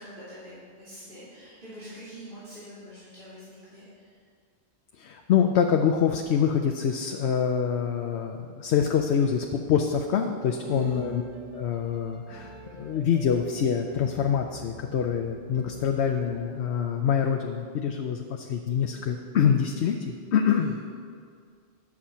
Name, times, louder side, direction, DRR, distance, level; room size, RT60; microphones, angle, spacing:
voice 1, 0.0-4.1 10.6-11.2 20.5-20.8, equal, 55° right, -12 dB, 2.9 m, -43 dB
voice 2, 5.0-11.2 11.5-20.8, left 7 dB, 85° left, 4 dB, 0.9 m, -25 dB
sound 1, 10.4-16.5, right 2 dB, 30° right, 1.5 m, -48 dB
11.0 x 7.4 x 5.6 m, 2.2 s
omnidirectional pair, 1.1 m